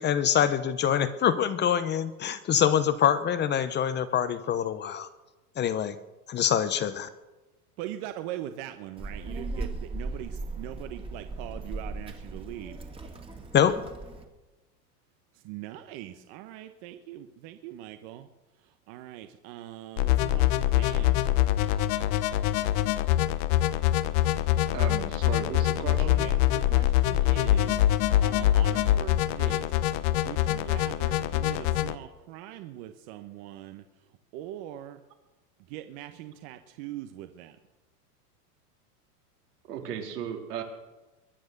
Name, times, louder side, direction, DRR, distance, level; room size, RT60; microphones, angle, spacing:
voice 1, 0.0-5.1 5.6-6.0 6.3-7.1 13.5-13.8, left 9 dB, 25° left, 13 dB, 0.7 m, -25 dB
voice 2, 7.8-12.8 15.3-18.3 18.6-21.3 25.7-29.7 30.2-33.8 34.3-35.0 35.7-37.6, right 13 dB, 50° right, 8 dB, 1.1 m, -41 dB
Child speech kid speaking, 9.0-14.2, right 2 dB, 10° right, 2.0 m, -38 dB
sound 1, 20.0-31.9, left 13 dB, 50° left, 1.0 m, -24 dB
voice 3, 24.7-26.3 39.7-40.6, right 8 dB, 80° right, 3 dB, 3.5 m, -35 dB
22.5 x 9.4 x 6.6 m, 1.1 s
supercardioid pair, 125°, 47 cm